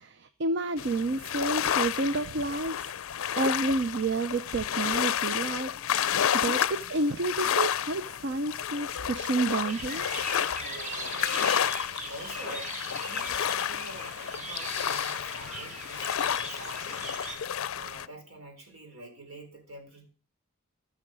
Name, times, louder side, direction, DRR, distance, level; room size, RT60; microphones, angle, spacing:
voice 1, 0.0-2.9 3.4-5.7 6.3-10.0, right 2 dB, 55° right, 10 dB, 0.6 m, -30 dB
sound 1, 0.8-18.1, left 9 dB, 70° left, 0.4 m, -31 dB
sound 2, 9.7-17.4, right 2 dB, 35° right, 1.7 m, -39 dB
voice 2, 10.5-11.8 12.1-12.7 13.0-17.0 17.7-20.1, right 1 dB, 75° right, 3 dB, 4.2 m, -46 dB
14.0 x 6.3 x 6.3 m, 0.40 s
head